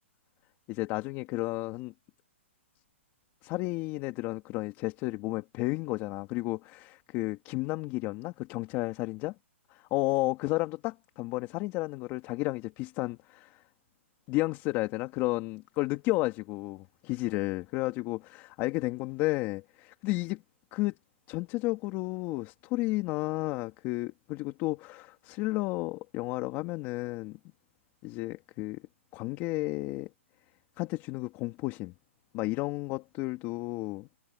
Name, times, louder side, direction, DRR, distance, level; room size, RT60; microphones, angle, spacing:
voice 1, 0.7-1.9 3.4-9.3 9.7-13.6 14.3-20.4 20.7-21.0 21.3-27.4 28.0-28.8 29.1-30.1 30.8-31.9 32.3-34.1, left 21 dB, 30° left, 2.3 m, -32 dB
hypercardioid pair, 150°, 7 cm